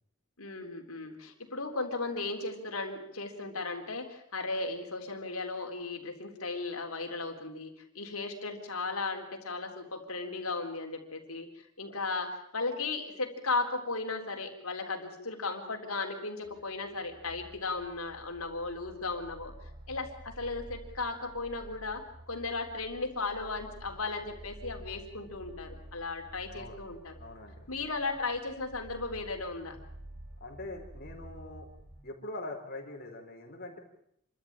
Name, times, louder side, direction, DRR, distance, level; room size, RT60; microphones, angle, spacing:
voice 1, 0.4-19.5 19.9-27.1 27.7-29.8, left 3 dB, 80° left, 3 dB, 3.8 m, -36 dB
sound 1, 16.4-32.0, right 1 dB, 45° right, 6.5 m, -50 dB
voice 2, 27.2-27.6 30.4-31.7 32.0-33.8, left 2 dB, 45° left, 2 dB, 4.2 m, -43 dB
28.0 x 13.5 x 8.9 m, 0.74 s
head